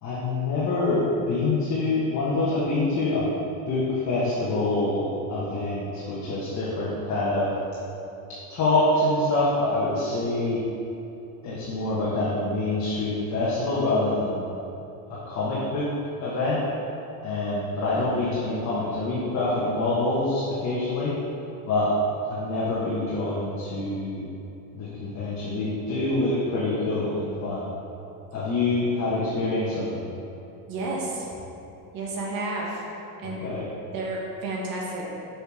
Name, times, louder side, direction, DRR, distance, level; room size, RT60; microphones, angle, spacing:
voice 1, 0.0-3.3 3.7-7.5 8.5-10.6 11.4-14.4 15.1-15.9 16.2-16.6 17.2-21.1 21.7-22.0 22.3-24.2 24.7-27.7 28.3-30.1 33.2-33.6, left 2 dB, 35° left, -8 dB, 1.5 m, -26 dB
voice 2, 30.7-31.3 31.9-32.8 33.2-33.4 33.9-35.1, right 2 dB, 50° right, -4 dB, 1.8 m, -31 dB
6.6 x 6.1 x 4.9 m, 2.9 s
cardioid pair, 150°, 46 cm